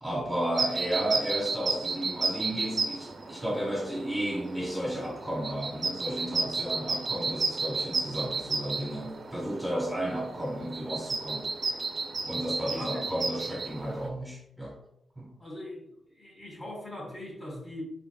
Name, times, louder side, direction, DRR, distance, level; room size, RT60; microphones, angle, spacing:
voice 1, 0.0-11.5 12.2-14.7 15.2-15.3, right 1 dB, ahead, -4 dB, 1.0 m, -33 dB
sound 1, 0.5-14.1, right 4 dB, 45° right, 0.4 m, -33 dB
voice 2, 12.7-13.0 15.4-17.8, left 1 dB, 35° left, -2 dB, 1.4 m, -41 dB
3.9 x 3.4 x 2.2 m, 0.75 s
wide cardioid pair, 120°, 0 cm